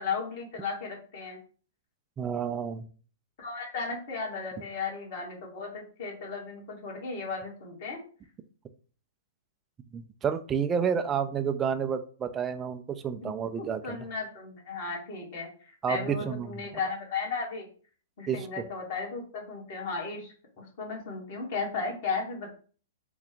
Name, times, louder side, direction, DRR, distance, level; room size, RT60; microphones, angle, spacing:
voice 1, 0.0-1.4 3.4-8.0 13.2-17.7 18.2-22.5, left 4 dB, 55° left, -1 dB, 1.8 m, -35 dB
voice 2, 2.2-2.9 9.9-14.1 15.8-16.6 18.3-18.5, right 7 dB, 20° right, 9 dB, 0.4 m, -30 dB
3.8 x 2.4 x 3.6 m, 0.42 s
hypercardioid pair, 120°, 0 cm